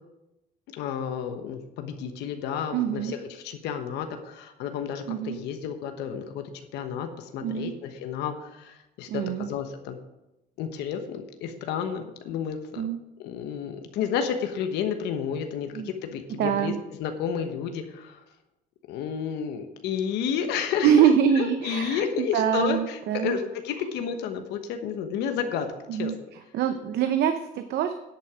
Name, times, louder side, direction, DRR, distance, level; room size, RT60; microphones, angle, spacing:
voice 1, 0.8-10.0 10.6-12.9 13.2-18.2 18.9-21.1 21.4-26.1, left 7 dB, 85° left, 6 dB, 1.2 m, -31 dB
voice 2, 2.7-3.1 5.1-5.4 7.4-7.7 9.1-9.5 12.8-13.0 15.7-15.9 16.4-16.8 20.8-23.4 25.9-26.2 26.5-27.9, right 9 dB, 75° right, 8 dB, 0.7 m, -24 dB
10.5 x 8.6 x 5.0 m, 0.94 s
cardioid pair, 110°, 17 cm